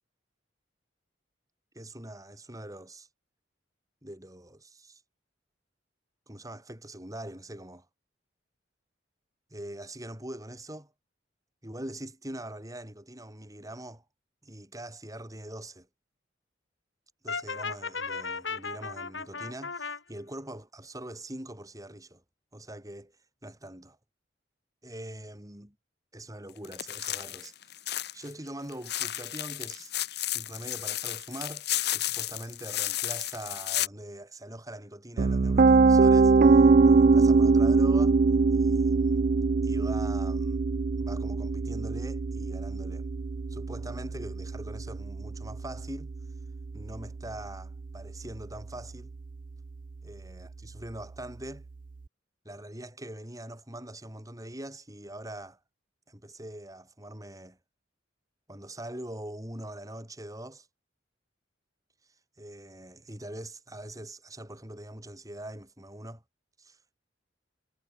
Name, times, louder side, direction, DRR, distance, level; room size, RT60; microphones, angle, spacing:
voice 1, 1.7-3.1 4.0-5.0 6.3-7.9 9.5-10.9 11.6-14.0 14.4-15.9 17.2-22.2 22.5-23.1 23.4-24.0 24.8-25.8 26.1-27.8 28.1-29.9 30.3-38.2 38.5-39.2 39.6-40.6 41.0-43.1 43.5-46.1 46.7-49.1 50.0-51.7 52.4-55.6 56.1-57.6 58.5-60.7 62.4-66.2 66.6-66.8, right 1 dB, 20° right, 7.8 m, -43 dB
Brass instrument, 17.3-20.0, left 5 dB, 80° left, 6.6 m, -35 dB
sound 1, 26.6-28.3 28.7-33.9, left 14 dB, 60° left, 2.1 m, -33 dB
Piano, 35.2-47.1, right 4 dB, 45° right, 0.4 m, -23 dB
head